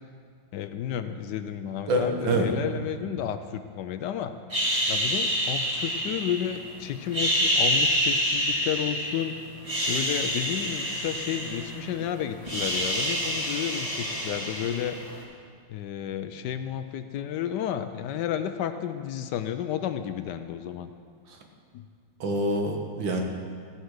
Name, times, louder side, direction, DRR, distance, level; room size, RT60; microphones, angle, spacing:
voice 1, 0.5-4.3 4.9-9.4 9.9-15.0 15.7-20.9 21.7-21.9, left 10 dB, 75° left, 10 dB, 1.1 m, -32 dB
voice 2, 1.9-2.5 3.0-3.1 22.2-23.2, right 1 dB, 80° right, 3 dB, 2.1 m, -26 dB
sound 1, 4.5-6.7 7.1-9.2 9.6-12.0 12.2-15.1, equal, 15° right, 2.2 m, -27 dB
14.5 x 8.1 x 6.4 m, 2.1 s
omnidirectional pair, 2.1 m